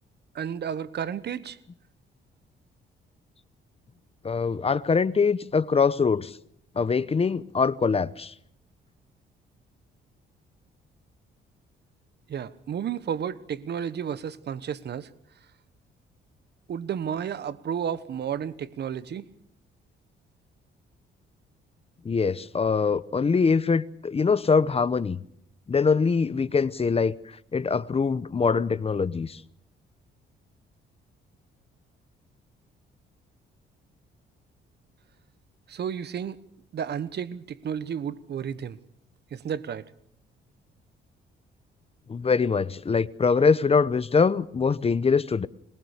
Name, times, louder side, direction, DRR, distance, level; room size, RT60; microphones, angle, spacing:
voice 1, 0.3-1.6 12.3-15.1 16.7-19.3 35.7-36.4 36.7-38.8 39.3-39.8, right 8 dB, 55° right, 1.2 m, -32 dB
voice 2, 4.2-6.3 6.8-8.3 22.0-25.2 25.7-27.1 27.5-29.4 42.1-45.5, left 5 dB, 30° left, 0.9 m, -23 dB
22.5 x 22.0 x 6.7 m
cardioid pair, 90°, 20 cm